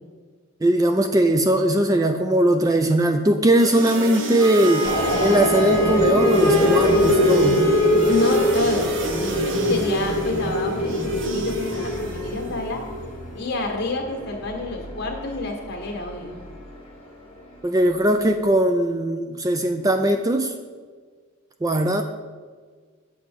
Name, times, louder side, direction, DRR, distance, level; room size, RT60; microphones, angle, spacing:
voice 1, 0.6-4.9 5.2-7.6 17.6-20.5 21.6-22.0, right 1 dB, 15° right, 7 dB, 0.3 m, -20 dB
sound 1, 3.5-12.6, right 2 dB, 60° right, 0.9 m, -32 dB
Wind instrument woodwind instrument, 4.4-8.8, equal, 80° right, 1.6 m, -27 dB
sound 2, 4.8-16.5, left 1 dB, 25° left, 1.2 m, -23 dB
voice 2, 8.0-9.0 9.7-12.8 13.3-16.4, left 2 dB, 50° left, 1 dB, 1.5 m, -28 dB
7.9 x 7.4 x 5.1 m, 1.6 s
head